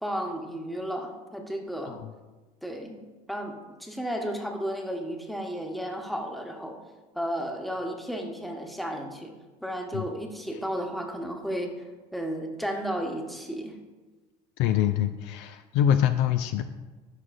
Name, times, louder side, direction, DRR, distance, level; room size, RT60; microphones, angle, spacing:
voice 1, 0.0-2.0 2.6-3.0 3.3-6.8 7.1-9.3 9.6-13.7, equal, ahead, 2 dB, 1.1 m, -33 dB
voice 2, 14.6-16.6, left 10 dB, 60° left, 9 dB, 0.4 m, -24 dB
11.0 x 4.7 x 2.5 m, 1.2 s
hypercardioid pair, 70°, 21 cm